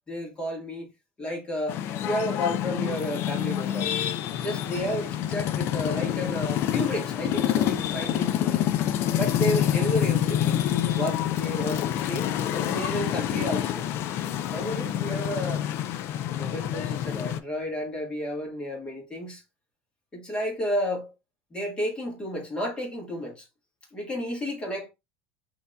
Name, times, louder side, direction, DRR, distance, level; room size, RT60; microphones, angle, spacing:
voice 1, 0.1-0.9 1.2-3.9 4.4-8.7 9.2-10.7 11.0-13.9 14.5-15.7 16.3-19.4 20.1-21.1 21.5-23.5 23.9-24.9, equal, 15° left, 1.5 m, -32 dB
sound 1, 1.7-17.4, left 11 dB, 45° left, 0.3 m, -27 dB
5.6 x 2.7 x 2.2 m
cardioid pair, 160°, 6 cm